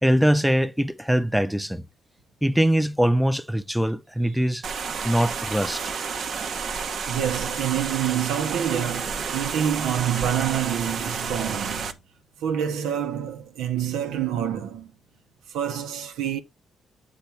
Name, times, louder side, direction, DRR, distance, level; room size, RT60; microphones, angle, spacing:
voice 1, 0.0-1.8 2.4-4.6 5.0-5.9, equal, ahead, 0.6 m, -22 dB
sound 1, 4.6-11.9, right 6 dB, 60° right, 0.9 m, -30 dB
voice 2, 7.1-11.9 12.4-14.9 15.5-16.4, right 9 dB, 90° right, 1.0 m, -27 dB
8.2 x 4.0 x 4.6 m
cardioid pair, 80°, 0 cm